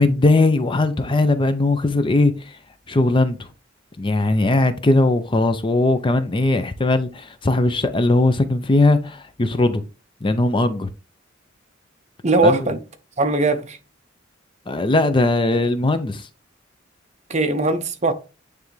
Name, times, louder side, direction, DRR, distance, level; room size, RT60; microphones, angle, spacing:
voice 1, 0.0-2.3 2.9-3.4 4.0-9.8 10.2-10.9 12.4-12.6 14.7-16.2, left 2 dB, 25° left, 0.5 m, -19 dB
voice 2, 12.2-12.8 13.2-13.8 17.3-18.1, right 2 dB, 35° right, 0.8 m, -19 dB
9.3 x 3.4 x 3.2 m
head